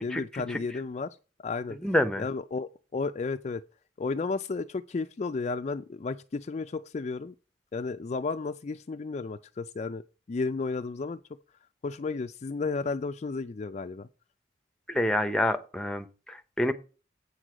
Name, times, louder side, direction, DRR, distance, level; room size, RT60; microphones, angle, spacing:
voice 1, 0.0-1.8 2.2-3.6 4.0-7.3 7.7-10.0 10.3-11.2 11.8-14.1, left 4 dB, 40° left, 0.4 m, -33 dB
voice 2, 1.8-2.2 14.9-16.7, left 1 dB, 5° left, 0.7 m, -27 dB
8.3 x 6.3 x 5.0 m
head